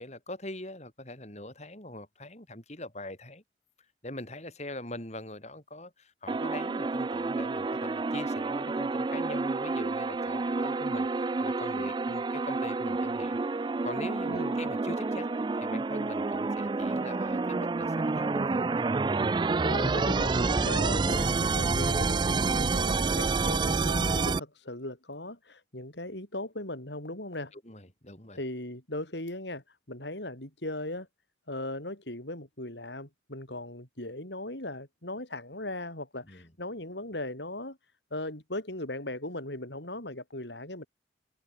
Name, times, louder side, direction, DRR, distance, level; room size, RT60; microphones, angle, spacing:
voice 1, 0.0-3.4 4.0-18.8 27.5-28.4 36.2-36.5, left 1 dB, 40° left, 6.3 m, -43 dB
sound 1, 6.3-24.4, right 3 dB, 25° right, 0.3 m, -29 dB
voice 2, 14.3-14.6 19.6-27.5 28.3-31.1 31.5-37.8 38.1-40.8, left 1 dB, 75° left, 6.8 m, -38 dB
head